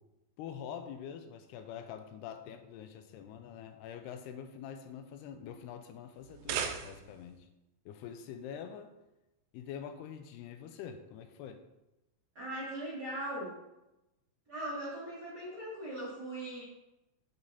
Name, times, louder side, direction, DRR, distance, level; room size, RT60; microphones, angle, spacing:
voice 1, 0.4-7.5 7.9-8.9 9.5-11.6, left 8 dB, 80° left, 8 dB, 2.5 m, -45 dB
sound 1, 6.2-7.3, right 7 dB, 80° right, 2.9 m, -37 dB
voice 2, 12.3-13.5 14.5-16.6, right 1 dB, 45° right, -7 dB, 1.3 m, -39 dB
8.0 x 7.0 x 4.1 m, 0.95 s
omnidirectional pair, 5.0 m